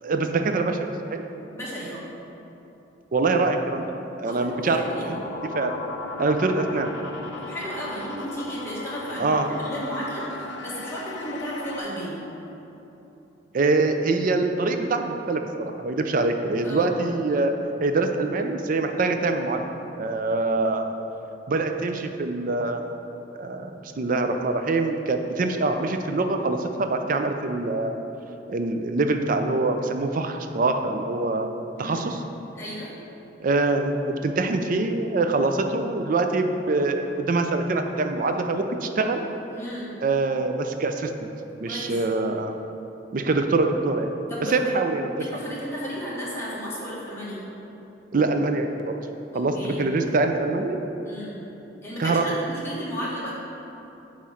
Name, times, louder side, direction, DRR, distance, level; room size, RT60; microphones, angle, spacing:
voice 1, 0.0-1.2 3.1-3.8 4.2-5.2 5.5-5.7 6.2-6.9 9.2-9.5 13.5-20.9 21.5-22.8 23.4-28.0 28.5-31.5 31.8-32.2 33.4-39.3 40.0-41.3 41.6-42.5 43.1-44.1 44.5-45.1 48.1-49.0 49.3-50.8 52.0-52.2, right 3 dB, 50° right, 6 dB, 0.4 m, -24 dB
voice 2, 1.5-2.0 4.2-5.1 7.5-12.2 16.6-16.9 31.8-32.0 32.5-32.9 39.5-39.9 41.7-41.9 44.3-44.7 45.2-47.4 49.3-49.8 51.0-51.4 51.8-53.3, equal, 15° left, -7 dB, 1.5 m, -34 dB
sound 1, 4.5-11.8, left 2 dB, 75° left, 0.6 m, -37 dB
8.4 x 3.1 x 5.7 m, 3.0 s
head